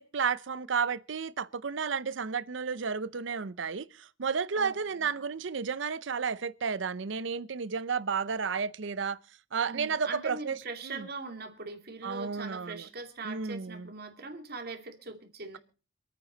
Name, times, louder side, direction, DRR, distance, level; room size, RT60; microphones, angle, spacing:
voice 1, 0.0-9.2 9.5-10.6 10.8-11.1 12.0-12.9 13.2-13.9, right 5 dB, 70° right, 0.6 m, -32 dB
voice 2, 4.6-5.1 9.7-15.6, right 3 dB, 50° right, 2.5 m, -41 dB
26.5 x 9.3 x 4.0 m
head